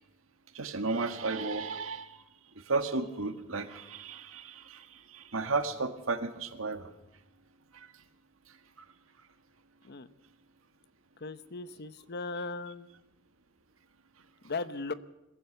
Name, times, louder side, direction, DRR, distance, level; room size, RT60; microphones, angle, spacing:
voice 1, 0.5-2.2 2.7-4.9 5.1-6.9 7.7-7.9, right 3 dB, 80° right, 9 dB, 1.8 m, -33 dB
voice 2, 11.2-12.9 14.4-14.9, left 3 dB, 55° left, 14 dB, 0.9 m, -37 dB
22.5 x 15.5 x 8.0 m, 0.98 s
head